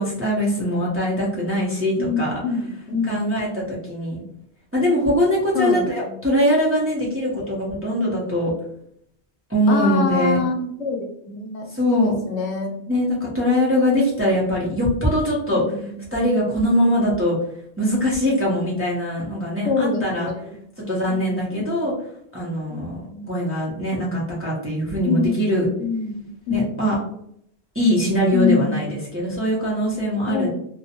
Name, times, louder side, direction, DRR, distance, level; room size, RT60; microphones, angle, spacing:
voice 1, 0.0-2.4 3.1-4.2 4.7-8.5 9.5-10.4 11.7-12.2 12.9-15.6 16.1-17.4 17.8-20.3 20.8-21.9 22.3-25.7 26.5-26.9 27.7-30.5, equal, 15° right, -6 dB, 0.5 m, -22 dB
voice 2, 2.0-3.7 5.5-5.8 9.7-12.8 15.5-16.0 19.7-20.5 21.1-21.6 22.7-23.3 25.0-25.5 25.8-27.0 28.3-28.9 30.3-30.5, left 4 dB, 80° left, 2 dB, 0.9 m, -26 dB
2.4 x 2.1 x 2.8 m, 0.70 s
omnidirectional pair, 1.2 m